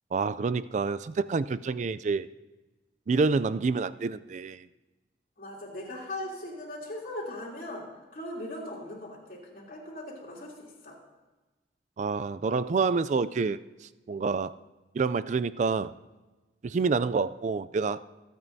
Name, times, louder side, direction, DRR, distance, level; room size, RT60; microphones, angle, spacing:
voice 1, 0.1-2.3 3.1-4.6 12.0-13.6 14.1-14.5 14.9-15.9 16.6-18.0, right 4 dB, 40° right, 15 dB, 0.3 m, -27 dB
voice 2, 5.4-11.0, left 1 dB, 50° left, -4 dB, 3.1 m, -39 dB
25.5 x 9.0 x 2.7 m, 1.2 s
head